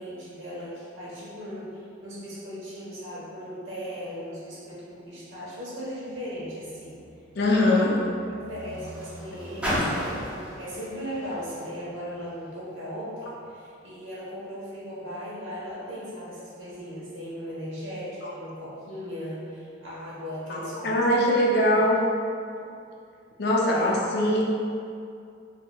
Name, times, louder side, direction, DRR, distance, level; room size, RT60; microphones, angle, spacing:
voice 1, 0.0-7.0 7.5-7.9 8.3-21.3 23.6-24.0, equal, 75° right, -8 dB, 1.1 m, -37 dB
Car, 6.0-12.6 13.4-13.5, equal, 5° right, 0.6 m, -36 dB
voice 2, 7.3-8.0 20.5-22.0 23.4-24.4, left 1 dB, 55° left, -3 dB, 0.5 m, -22 dB
4.5 x 2.8 x 2.3 m, 2.4 s
head